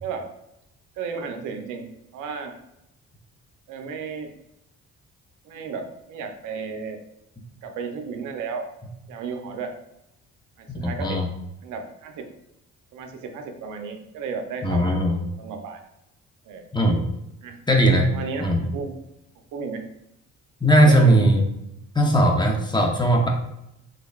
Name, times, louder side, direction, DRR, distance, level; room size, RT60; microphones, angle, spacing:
voice 1, 1.0-1.9 2.1-2.5 3.7-4.3 5.4-7.0 7.6-8.7 9.1-9.8 10.6-11.2 11.6-12.3 12.9-15.0 15.4-15.8 16.5-16.6 17.4-17.6 18.1-18.5 18.7-18.9 19.5-19.8 20.8-21.2, right 5 dB, 90° right, 4 dB, 0.6 m, -33 dB
voice 2, 10.7-11.3 14.6-15.2 16.7-17.0 17.7-18.1 18.4-18.6 20.6-21.4 21.9-23.3, right 1 dB, 15° left, 2 dB, 0.7 m, -18 dB
3.7 x 3.3 x 2.4 m, 0.84 s
cardioid pair, 90°, 30 cm